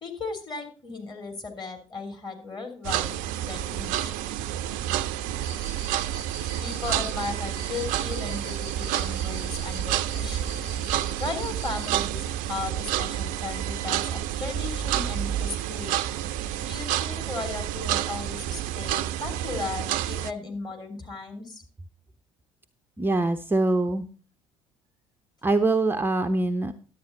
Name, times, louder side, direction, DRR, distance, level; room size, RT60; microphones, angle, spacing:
voice 1, 0.0-3.1 3.4-4.2 6.6-10.4 11.2-16.0 16.6-21.6, left 3 dB, 30° left, 3 dB, 3.2 m, -36 dB
sound 1, 2.8-20.3, right 12 dB, 55° right, 0.5 m, -29 dB
Cricket, 5.4-11.9, right 1 dB, 70° left, 6.2 m, -44 dB
voice 2, 23.0-24.1 25.4-26.7, right 2 dB, 15° right, 8 dB, 0.6 m, -23 dB
11.0 x 8.6 x 3.9 m, 0.37 s
figure-of-eight pair, 55°, 16 cm